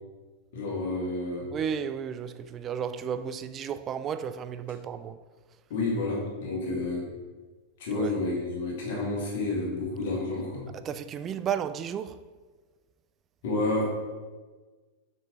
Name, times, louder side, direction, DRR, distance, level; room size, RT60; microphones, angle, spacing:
voice 1, 0.5-1.5 5.7-7.0 7.8-10.7 13.4-13.8, left 2 dB, 55° left, 1.8 m, -30 dB
voice 2, 1.5-5.2 7.9-8.1 10.7-12.2, right 8 dB, 30° right, 0.3 m, -33 dB
6.3 x 5.4 x 3.0 m
figure-of-eight pair, 90°, 0 cm